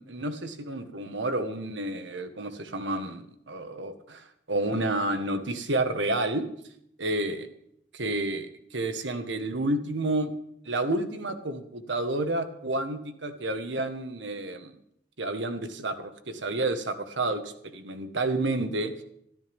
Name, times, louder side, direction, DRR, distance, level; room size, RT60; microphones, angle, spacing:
voice 1, 0.0-6.4 7.0-7.5 7.9-10.3 10.6-14.7 15.2-18.9, right 2 dB, 80° right, 8 dB, 1.5 m, -30 dB
23.0 x 13.5 x 3.6 m, 0.72 s
head